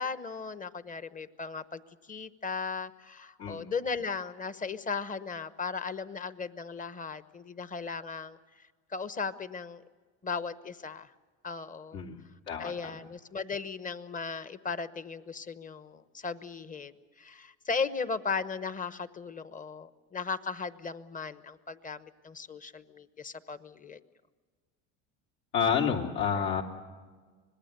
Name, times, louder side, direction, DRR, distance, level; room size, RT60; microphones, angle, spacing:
voice 1, 0.0-9.8 10.2-11.1 11.4-12.0 12.6-24.0, left 5 dB, 20° left, 14 dB, 1.0 m, -37 dB
voice 2, 3.4-3.7 11.9-13.0 25.5-26.6, left 7 dB, 70° left, 1 dB, 3.5 m, -30 dB
26.0 x 20.0 x 6.8 m, 1.5 s
supercardioid pair, 95°, 39 cm